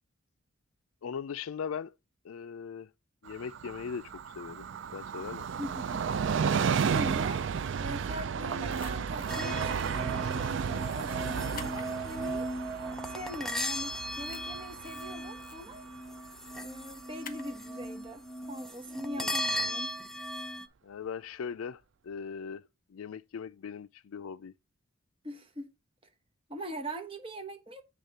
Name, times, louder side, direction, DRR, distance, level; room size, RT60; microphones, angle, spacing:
voice 1, 1.0-1.9 2.2-2.9 3.2-4.7 4.9-5.5 19.2-19.3 20.8-24.5, left 6 dB, 80° left, 0.4 m, -39 dB
Train, 3.3-16.6 16.9-17.0, right 6 dB, 60° right, 0.4 m, -33 dB
voice 2, 5.6-6.0 6.9-7.5 7.8-12.5 13.1-15.9 16.6-19.9 25.2-25.7 26.5-27.8, equal, 25° right, 1.1 m, -42 dB
sound 1, 8.7-9.4 9.7-9.9 11.5-11.8 13.5-13.8 14.1-14.4 14.8-15.6 17.2-17.5, left 7 dB, 40° left, 0.9 m, -48 dB
sound 2, 9.3-20.7, equal, ahead, 0.5 m, -37 dB
8.1 x 3.6 x 6.7 m
head